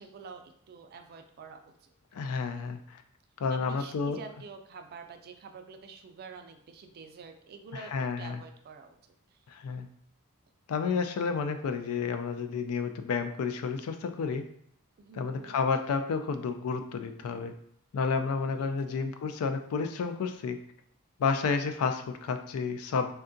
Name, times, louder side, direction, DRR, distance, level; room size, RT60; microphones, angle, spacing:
voice 1, 0.0-1.9 3.5-9.0 15.0-15.6 18.5-19.0, right 5 dB, 45° right, 6 dB, 0.3 m, -47 dB
voice 2, 2.1-3.0 3.4-4.2 7.7-8.4 9.5-9.9 10.7-14.4 15.1-17.5 17.9-20.6 21.2-23.1, left 5 dB, 75° left, 8 dB, 0.3 m, -31 dB
3.6 x 2.2 x 2.5 m, 0.69 s
head